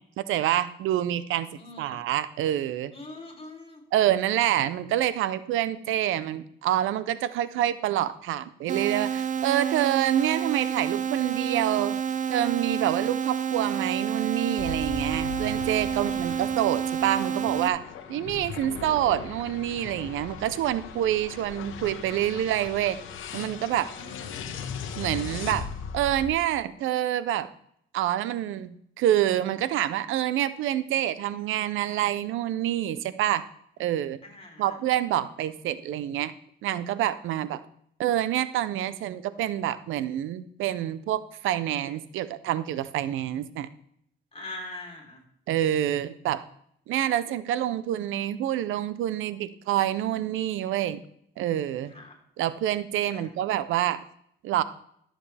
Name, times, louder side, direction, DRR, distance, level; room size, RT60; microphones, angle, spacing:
voice 1, 0.2-1.5 1.8-2.9 3.9-12.0 12.3-17.8 18.1-23.0 23.3-23.9 25.0-25.7 25.9-27.5 27.9-33.5 33.8-34.2 34.6-36.3 36.6-37.6 38.0-43.7 45.5-46.4 46.9-51.0 51.4-51.9 52.4-54.0 54.4-54.6, right 12 dB, 85° right, 15 dB, 0.6 m, -27 dB
voice 2, 1.6-2.0 2.9-3.8 15.9-16.4 24.0-24.5 34.2-34.8 44.3-45.2 51.9-52.1 53.1-53.3, left 2 dB, 30° left, 1 dB, 3.5 m, -43 dB
sound 1, 8.7-17.7, right 8 dB, 40° right, 0.6 m, -29 dB
sound 2, 14.6-26.3, left 6 dB, 85° left, 1.1 m, -38 dB
13.0 x 7.4 x 3.4 m, 0.68 s
cardioid pair, 90°, 20 cm